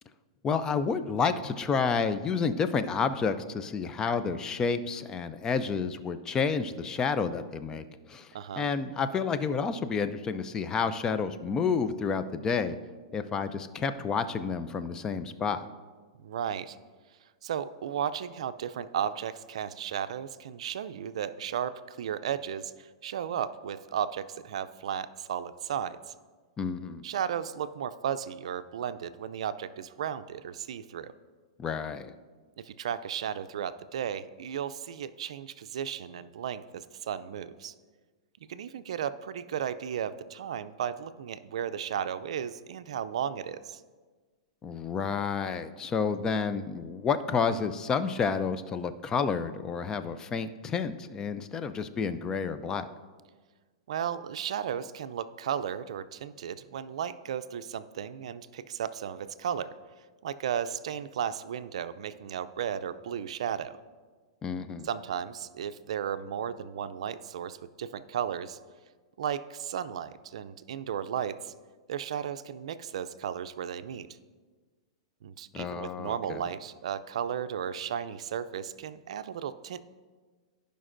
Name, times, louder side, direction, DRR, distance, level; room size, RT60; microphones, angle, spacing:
voice 1, 0.4-12.8 13.1-15.7 26.6-27.0 31.6-32.1 44.6-52.9 64.4-64.9 75.5-76.4, left 5 dB, 20° left, 11 dB, 0.4 m, -30 dB
voice 2, 8.3-8.7 16.2-16.8 17.4-26.1 27.0-31.1 32.6-37.7 38.5-43.8 53.9-59.7 60.2-63.8 64.8-68.6 69.2-71.5 71.9-74.1 75.2-79.9, right 9 dB, 75° right, 13 dB, 0.4 m, -34 dB
15.5 x 5.2 x 2.6 m, 1.4 s
hypercardioid pair, 140°, 3 cm